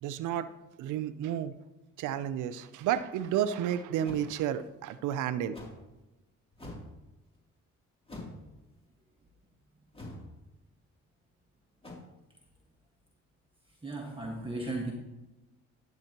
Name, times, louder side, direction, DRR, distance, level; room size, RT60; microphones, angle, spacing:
voice 1, 0.0-0.5 0.8-1.6 2.0-5.7, right 10 dB, 85° right, 14 dB, 0.6 m, -31 dB
sound 1, 4.0-4.3 5.5-5.8 6.5-6.9 8.1-8.4 9.9-10.3 11.8-12.0, left 1 dB, 20° left, 2.9 m, -44 dB
voice 2, 13.7-14.9, right 2 dB, 15° right, -1 dB, 1.5 m, -36 dB
12.0 x 9.2 x 2.9 m, 1.0 s
cardioid pair, 90°, 30 cm